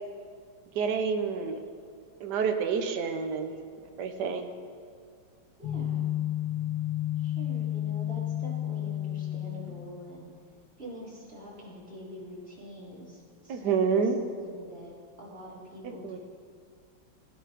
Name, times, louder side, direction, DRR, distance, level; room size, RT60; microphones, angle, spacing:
voice 1, 0.7-1.6 2.2-3.6 4.0-4.5 13.5-14.2 16.0-16.2, right 6 dB, 65° right, 6 dB, 1.5 m, -28 dB
sound 1, 5.6-10.0, left 12 dB, 85° left, 1.7 m, -31 dB
voice 2, 5.6-6.2 7.2-10.3 10.8-16.2, equal, 30° right, -6 dB, 3.8 m, -45 dB
17.5 x 10.0 x 5.9 m, 2.1 s
omnidirectional pair, 2.1 m